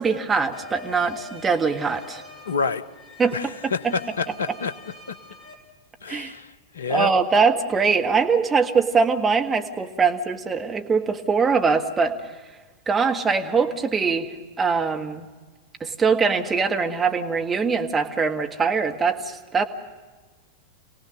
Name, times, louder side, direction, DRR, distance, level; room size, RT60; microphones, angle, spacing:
voice 1, 0.0-2.2 3.2-3.9 6.1-6.3 6.9-12.2 12.9-14.3 14.6-15.3 15.8-19.7, right 5 dB, 20° right, 4 dB, 1.7 m, -22 dB
sound 1, 0.5-5.5, left 3 dB, 10° left, 5.4 m, -44 dB
voice 2, 2.5-2.8 3.3-4.7 6.0-7.1, left 5 dB, 70° left, 14 dB, 0.8 m, -28 dB
27.5 x 18.0 x 6.6 m, 1.3 s
figure-of-eight pair, 90°, 0 cm